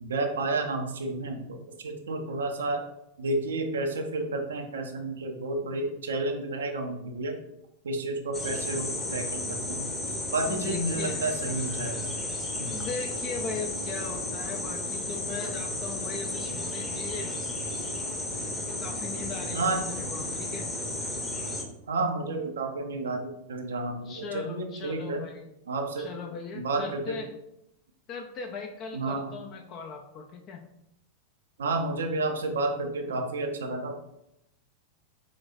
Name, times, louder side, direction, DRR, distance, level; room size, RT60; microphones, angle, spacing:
voice 1, 0.0-2.8 3.2-7.4 7.8-9.9 10.3-12.1 12.6-12.8 19.5-19.9 21.9-25.2 25.7-26.1 26.5-27.2 28.9-29.3 31.6-33.9, right 2 dB, 65° right, 4 dB, 0.6 m, -31 dB
sound 1, 8.3-21.6, left 2 dB, 15° left, 0.9 m, -33 dB
voice 2, 10.5-11.2 12.6-17.4 18.5-20.7 24.0-25.5 26.0-27.3 28.1-30.6, left 4 dB, 35° left, 2 dB, 0.5 m, -39 dB
5.1 x 3.1 x 2.6 m, 0.81 s
figure-of-eight pair, 90°, 0 cm